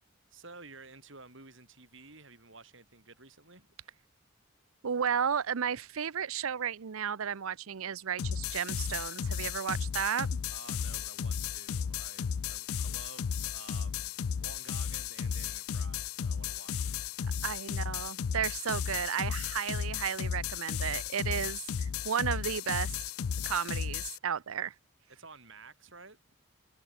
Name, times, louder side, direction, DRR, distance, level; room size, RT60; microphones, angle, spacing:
voice 1, 0.3-3.7 10.5-17.1 25.1-26.2, right 3 dB, 60° right, 6.5 m, -52 dB
voice 2, 4.8-10.3 17.4-22.9 23.5-24.7, right 7 dB, 80° right, 0.6 m, -33 dB
sound 1, 8.2-24.2, left 7 dB, 85° left, 0.5 m, -34 dB
head